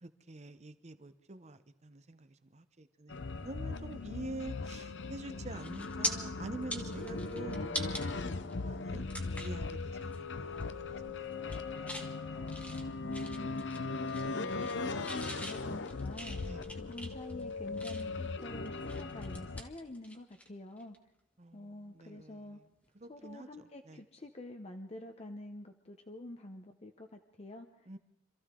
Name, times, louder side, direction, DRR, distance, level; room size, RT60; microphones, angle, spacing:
voice 1, 0.0-3.2 3.4-9.0 9.4-12.1 16.4-16.6 21.4-22.5 23.0-24.0 27.9-28.0, right 2 dB, 35° right, 11 dB, 0.8 m, -47 dB
sound 1, 3.1-19.6, left 3 dB, 70° left, 0.7 m, -39 dB
sound 2, 5.0-5.2 5.6-6.1 6.5-8.0 8.5-8.6 9.1-9.6 10.0-10.2 10.5-11.0 11.3-12.1 12.5-13.8 14.1-14.8 15.0-18.2 18.6-20.5 20.8-21.0 22.8-23.0, left 1 dB, 10° left, 1.4 m, -42 dB
voice 2, 13.0-21.0 21.5-22.6 23.1-27.9, left 1 dB, 35° left, 5 dB, 0.8 m, -47 dB
26.5 x 14.5 x 3.7 m, 0.83 s
head